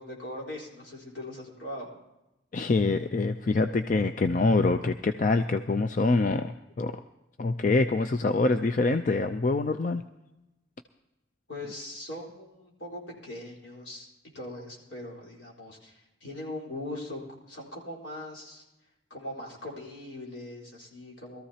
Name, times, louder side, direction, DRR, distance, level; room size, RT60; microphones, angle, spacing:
voice 1, 0.0-1.9 11.5-14.1 14.3-17.2 17.5-18.6 19.1-21.4, left 1 dB, 75° left, -3 dB, 4.2 m, -40 dB
voice 2, 2.5-6.9 7.4-10.0, left 3 dB, 40° left, 8 dB, 0.4 m, -25 dB
22.0 x 14.0 x 2.8 m, 0.97 s
head